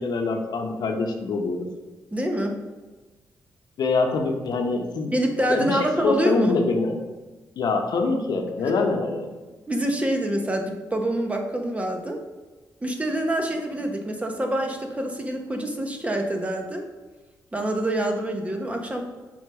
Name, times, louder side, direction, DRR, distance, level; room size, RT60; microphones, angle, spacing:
voice 1, 0.0-1.7 3.8-5.1 5.5-6.9 7.6-9.4, left 3 dB, 70° left, 3 dB, 0.9 m, -25 dB
voice 2, 2.1-2.5 5.1-6.5 9.7-12.2 12.8-16.8 17.5-19.0, right 1 dB, 20° right, 2 dB, 1.2 m, -26 dB
6.3 x 3.9 x 5.0 m, 1.2 s
cardioid pair, 70°, 7 cm